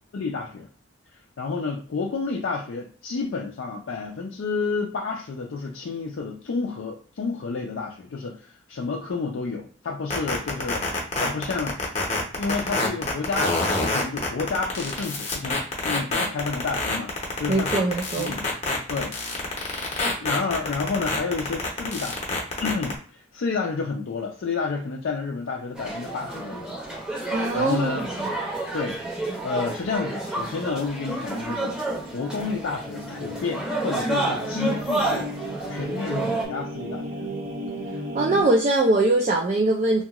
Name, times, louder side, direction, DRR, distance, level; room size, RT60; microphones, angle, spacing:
voice 1, 0.1-0.7 1.4-11.8 12.4-18.5 18.9-19.6 20.1-26.8 27.2-28.1 28.7-29.0 29.4-31.8 32.1-35.3 35.7-37.3, left 4 dB, 70° left, 0 dB, 0.4 m, -30 dB
sound 1, 10.1-22.9, left 3 dB, 35° left, 0.7 m, -26 dB
voice 2, 17.5-18.4 27.3-28.3 38.1-40.0, right 2 dB, 35° right, -2 dB, 0.4 m, -22 dB
sound 2, 25.8-36.5, right 2 dB, 5° right, 0.7 m, -30 dB
sound 3, 31.7-38.4, equal, 50° right, 1.0 m, -36 dB
2.8 x 2.3 x 2.8 m, 0.43 s
head